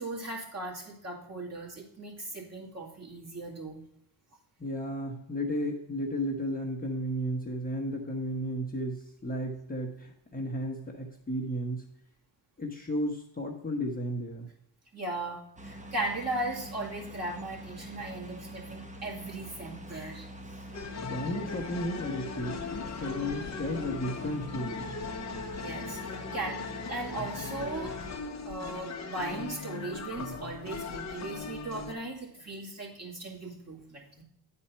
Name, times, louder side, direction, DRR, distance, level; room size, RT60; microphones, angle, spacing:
voice 1, 0.0-3.8 14.9-20.3 25.6-28.0 28.4-34.2, right 2 dB, 35° right, -3 dB, 2.4 m, -38 dB
voice 2, 4.6-11.8 12.6-14.5 21.1-25.0, equal, 20° left, -1 dB, 1.1 m, -34 dB
sound 1, 15.6-28.2, right 1 dB, 15° right, 1.0 m, -45 dB
sound 2, 20.7-31.9, left 4 dB, 35° left, 1.0 m, -39 dB
8.7 x 4.3 x 5.7 m, 0.74 s
cardioid pair, 85°, 47 cm